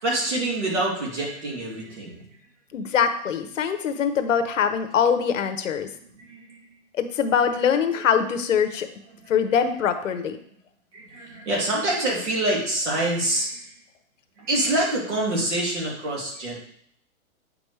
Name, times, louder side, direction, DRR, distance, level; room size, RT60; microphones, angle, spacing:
voice 1, 0.0-2.4 6.1-6.7 9.1-9.3 10.9-13.8 14.4-16.5, right 1 dB, 60° right, -2 dB, 2.9 m, -26 dB
voice 2, 2.7-5.9 6.9-8.9 9.3-10.4, left 7 dB, 65° left, 9 dB, 1.0 m, -23 dB
8.6 x 5.2 x 3.2 m, 0.65 s
hypercardioid pair, 175°, 40 cm